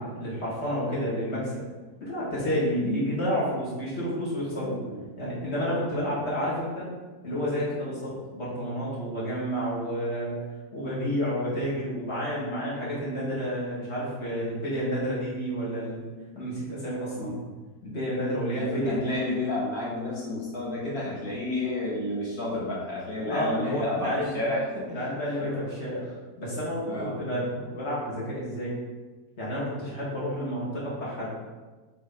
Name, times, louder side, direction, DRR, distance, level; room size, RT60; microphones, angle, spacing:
voice 1, 0.0-1.5 2.0-4.8 5.2-6.9 7.2-10.3 10.7-16.0 16.3-17.3 17.8-19.0 23.3-24.4 24.9-26.0 26.4-28.7 29.4-31.3, equal, 45° left, -8 dB, 2.6 m, -30 dB
voice 2, 18.6-24.9 25.4-25.6 26.9-27.2, left 2 dB, 70° left, -7 dB, 2.6 m, -31 dB
7.5 x 4.5 x 3.9 m, 1.3 s
omnidirectional pair, 1.6 m